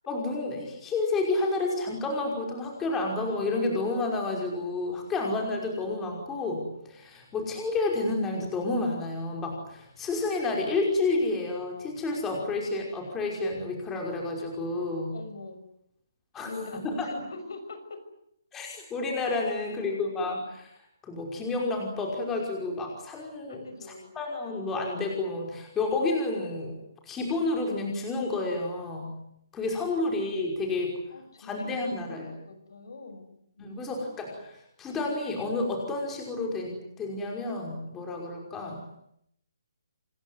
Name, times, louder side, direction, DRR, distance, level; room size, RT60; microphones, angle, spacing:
voice 1, 0.1-15.2 16.3-17.0 18.5-20.7 21.0-23.6 24.2-26.7 27.0-29.1 29.5-31.0 31.4-32.3 33.6-38.8, left 2 dB, 10° left, 0 dB, 5.6 m, -30 dB
voice 2, 15.1-15.6 16.4-18.0 19.5-20.1 23.5-24.1 31.1-32.2 32.5-34.1, left 3 dB, 75° left, 9 dB, 6.5 m, -44 dB
27.0 x 21.5 x 9.7 m, 0.75 s
hypercardioid pair, 170°, 2 cm